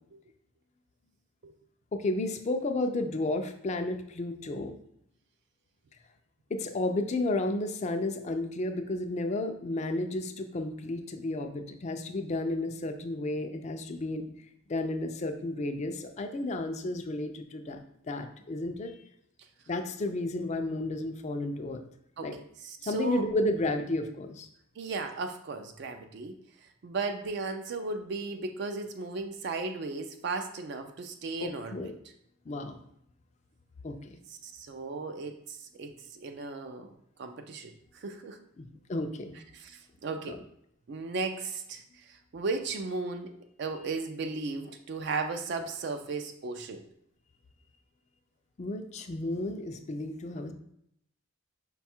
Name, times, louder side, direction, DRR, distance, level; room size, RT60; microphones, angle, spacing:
voice 1, 1.9-4.8 6.5-14.3 14.7-18.9 19.7-21.8 22.2-22.3 22.9-24.5 31.4-31.9 32.5-32.8 33.8-34.2 38.6-39.4 40.3-40.4 48.6-50.5, left 2 dB, 35° left, 6 dB, 0.4 m, -32 dB
voice 2, 22.2-23.2 24.8-26.4 26.8-31.9 34.4-36.9 37.2-37.7 38.0-38.4 39.5-40.4 40.9-43.3 43.6-46.8, right 4 dB, 55° right, 6 dB, 0.3 m, -35 dB
5.4 x 2.3 x 4.3 m, 0.74 s
head